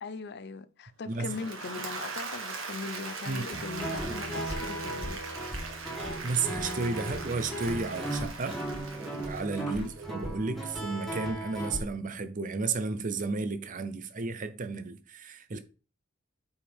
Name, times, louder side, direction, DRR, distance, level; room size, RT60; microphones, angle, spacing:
voice 1, 0.0-5.2 9.8-9.9, left 4 dB, 55° left, 0.6 m, -40 dB
voice 2, 1.1-1.4 3.3-3.6 6.2-8.6 8.9-15.6, right 3 dB, 40° right, 0.6 m, -33 dB
Applause / Crowd, 1.1-10.3, right 4 dB, 75° right, 1.8 m, -40 dB
Guitar, 3.5-11.8, right 1 dB, ahead, 2.2 m, -36 dB
8.4 x 4.8 x 3.5 m
head